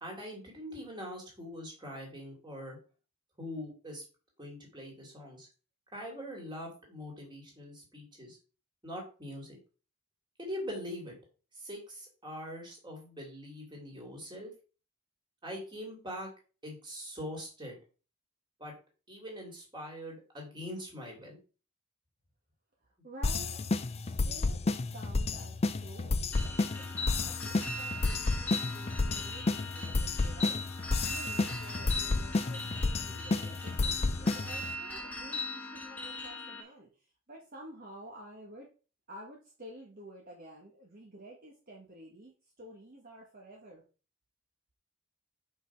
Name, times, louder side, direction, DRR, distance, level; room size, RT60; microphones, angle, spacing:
voice 1, 0.0-2.8 3.4-4.0 4.4-5.5 5.9-8.4 8.8-9.6 10.4-11.2 11.6-14.5 15.4-16.3 16.6-17.8 18.6-18.7 19.1-21.4, equal, 20° right, 0 dB, 2.7 m, -42 dB
voice 2, 22.8-26.2 26.4-38.7 39.1-43.8, right 1 dB, 45° right, -1 dB, 1.4 m, -51 dB
sound 1, 23.2-34.7, left 3 dB, 30° left, 0.4 m, -31 dB
sound 2, 26.3-36.6, left 2 dB, 5° left, 1.3 m, -39 dB
5.8 x 5.5 x 4.5 m, 0.35 s
head